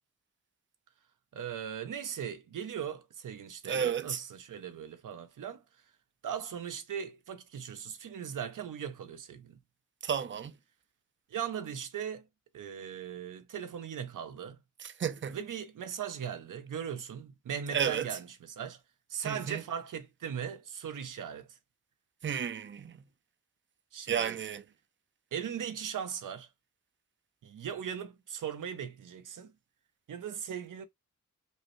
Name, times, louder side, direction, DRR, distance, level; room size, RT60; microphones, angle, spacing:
voice 1, 1.3-5.6 6.2-9.6 11.3-12.3 12.5-14.6 15.3-18.8 19.1-21.6 23.9-24.4 25.3-26.5 27.4-29.5 30.1-30.9, right 8 dB, 80° right, 0.7 m, -39 dB
voice 2, 3.7-4.2 10.0-10.5 15.0-15.4 17.7-18.0 19.2-19.6 22.2-22.9 24.1-24.6, right 8 dB, 40° right, 0.5 m, -32 dB
5.4 x 2.1 x 3.1 m
wide cardioid pair, 85°, 31 cm